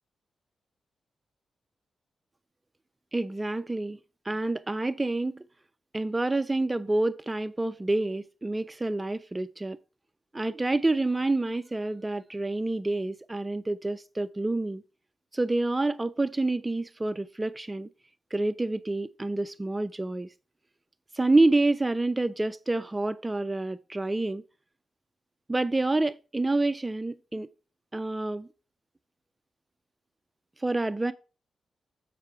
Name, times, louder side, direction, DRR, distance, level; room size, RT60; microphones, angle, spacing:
voice 1, 3.1-4.0 4.3-5.4 5.9-9.8 10.3-14.8 15.3-17.9 18.3-20.3 21.1-24.4 25.5-27.5 27.9-28.5 30.6-31.1, right 2 dB, 15° right, 0.3 m, -28 dB
7.4 x 6.1 x 3.3 m
wide cardioid pair, 145°, 0 cm